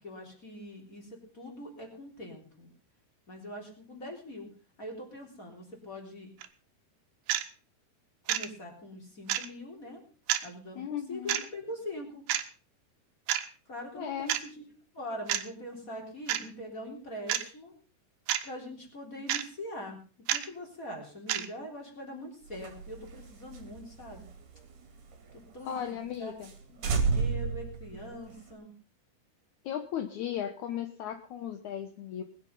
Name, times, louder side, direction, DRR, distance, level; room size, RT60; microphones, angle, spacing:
voice 1, 0.0-2.7 3.3-4.5 4.8-6.3 8.3-10.0 10.4-12.2 13.7-14.5 14.9-17.7 18.4-20.0 20.3-24.2 25.3-26.3 26.7-28.7, left 1 dB, 20° left, 1 dB, 3.5 m, -43 dB
sound 1, 6.4-6.5 7.3-7.4 8.3-8.5 9.3-9.5 10.3-10.5 11.3-11.5 12.3-12.4 13.3-13.5 14.3-14.4 15.3-15.4 16.3-16.4 17.3-17.5 18.3-18.5 19.3-19.4 20.3-20.5 21.3-21.5, right 12 dB, 90° right, 3.2 m, -28 dB
voice 2, 10.8-11.5 13.9-14.3 25.7-26.5 29.6-32.2, left 10 dB, 75° left, 7 dB, 1.7 m, -36 dB
sound 2, 22.5-25.3 25.7-25.8 26.1-26.2 26.4-26.6 26.8-28.5, right 4 dB, 55° right, 3.7 m, -32 dB
20.5 x 9.8 x 5.4 m, 0.39 s
omnidirectional pair, 4.8 m